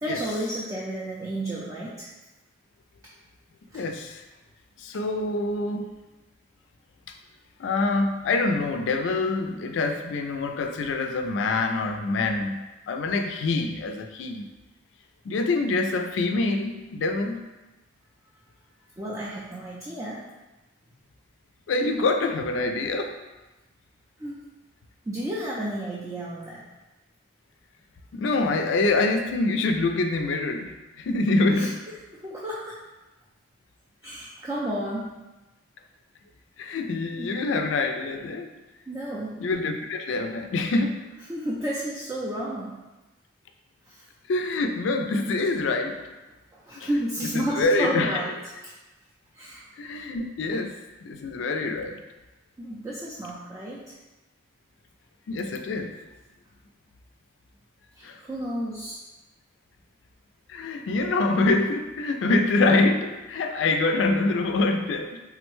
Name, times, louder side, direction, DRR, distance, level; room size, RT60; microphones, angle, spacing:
voice 1, 0.0-2.1 3.7-3.8 19.0-20.2 24.2-24.4 25.1-26.6 31.5-31.7 32.2-32.8 34.0-35.2 37.2-37.4 38.9-39.4 41.3-42.8 43.9-44.0 46.5-48.3 49.3-49.6 52.6-54.0 57.9-59.0, right 1 dB, 20° right, -6 dB, 0.4 m, -32 dB
voice 2, 3.7-4.2 4.8-5.9 7.1-7.2 7.6-14.5 15.2-17.5 21.7-23.2 28.1-31.8 36.6-38.5 39.4-41.0 44.3-46.0 46.8-46.9 47.3-48.2 49.8-52.0 55.3-56.0 58.0-58.2 60.5-65.2, left 3 dB, 70° left, 5 dB, 0.3 m, -25 dB
3.7 x 2.1 x 3.0 m, 1.1 s
head